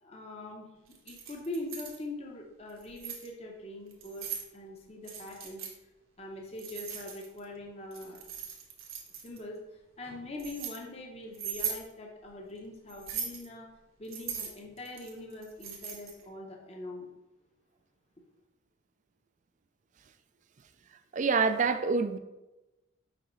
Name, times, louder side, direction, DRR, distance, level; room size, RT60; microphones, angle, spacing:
voice 1, 0.0-0.7 1.0-5.6 6.2-8.2 9.2-13.7 14.0-17.1, left 1 dB, 30° left, 0 dB, 0.7 m, -42 dB
Keys jangling, 0.9-2.0 2.7-3.3 3.9-4.5 5.0-5.7 6.6-7.4 7.9-9.4 10.0-10.8 11.3-11.8 12.9-13.5 14.1-16.2, right 7 dB, 80° right, 1.2 m, -39 dB
voice 2, 21.1-22.2, right 5 dB, 35° right, 10 dB, 0.3 m, -26 dB
6.0 x 5.0 x 3.1 m, 1.0 s
head